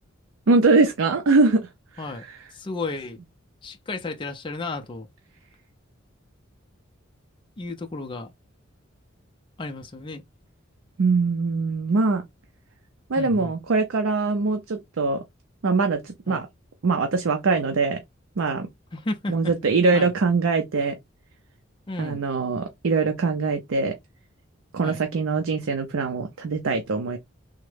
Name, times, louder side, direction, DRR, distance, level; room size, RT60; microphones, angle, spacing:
voice 1, 0.5-1.7 1.9-2.0 11.0-12.2 13.1-15.2 15.6-16.5 16.8-18.0 18.4-18.7 19.3-21.0 22.0-23.9 24.7-27.2, right 3 dB, 80° right, 0.5 m, -22 dB
voice 2, 2.5-3.2 3.6-5.1 7.6-8.3 9.6-10.2 13.2-13.5 16.3-16.5 18.9-19.5 19.9-20.1 21.9-22.3 24.8-25.0, left 2 dB, 25° left, 0.4 m, -33 dB
3.5 x 2.1 x 3.2 m
head